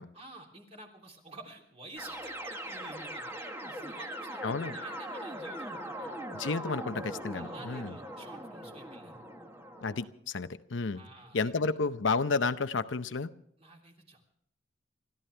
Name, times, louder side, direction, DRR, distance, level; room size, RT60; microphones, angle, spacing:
voice 1, 0.1-6.2 6.6-6.8 7.3-9.2 10.9-11.7 13.6-14.3, right 2 dB, 35° right, 1 dB, 3.2 m, -50 dB
sound 1, 2.0-10.1, right 1 dB, 15° right, 1.4 m, -41 dB
voice 2, 4.4-4.8 6.3-7.9 9.8-11.0 11.3-13.3, left 4 dB, 85° left, 10 dB, 0.8 m, -31 dB
28.5 x 13.5 x 3.4 m, 0.67 s
head